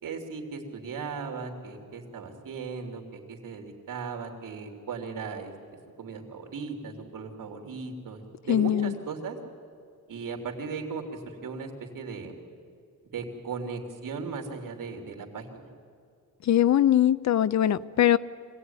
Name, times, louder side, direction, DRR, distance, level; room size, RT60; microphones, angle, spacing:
voice 1, 0.0-5.5 6.0-9.4 10.1-12.4 13.1-15.7, right 5 dB, 80° right, 3.3 m, -37 dB
voice 2, 8.5-8.9 16.5-18.2, left 11 dB, 55° left, 0.6 m, -21 dB
25.0 x 18.0 x 9.6 m
wide cardioid pair, 155°, 33 cm